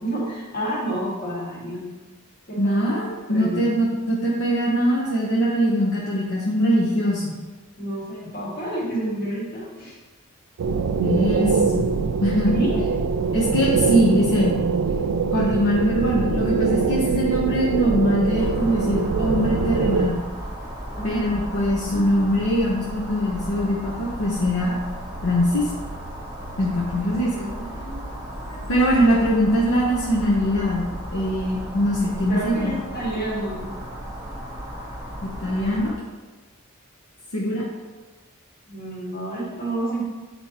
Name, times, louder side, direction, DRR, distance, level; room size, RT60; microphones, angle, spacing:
voice 1, 0.0-1.8 2.5-2.9 3.3-3.7 7.8-10.0 12.5-12.8 21.0-21.4 21.9-22.3 27.3-28.2 28.5-28.7 32.0-33.7 38.7-40.0, right 1 dB, 45° left, -5 dB, 1.8 m, -30 dB
voice 2, 2.6-7.4 11.0-11.9 12.2-12.5 13.3-14.6 15.3-20.2 21.0-24.7 25.2-25.7 26.6-27.3 28.7-30.8 31.1-32.8 35.4-36.0 37.3-37.6, equal, 70° left, -5 dB, 0.9 m, -22 dB
sound 1, 10.6-20.1, right 5 dB, 85° right, 0.4 m, -23 dB
sound 2, 18.4-35.9, equal, 15° right, 1.0 m, -35 dB
8.3 x 4.3 x 2.9 m, 1.3 s
head